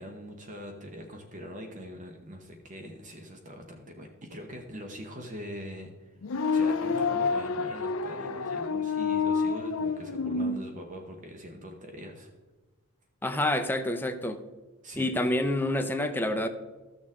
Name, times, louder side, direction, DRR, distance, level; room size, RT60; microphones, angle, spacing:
voice 1, 0.0-6.1 6.5-12.3 14.8-15.1, equal, 35° right, 4 dB, 0.9 m, -43 dB
sound 1, 6.2-10.6, left 4 dB, 65° left, 0.5 m, -28 dB
voice 2, 13.2-14.4 15.0-16.5, left 1 dB, 10° left, 7 dB, 0.6 m, -28 dB
14.0 x 6.6 x 3.7 m, 1.2 s
head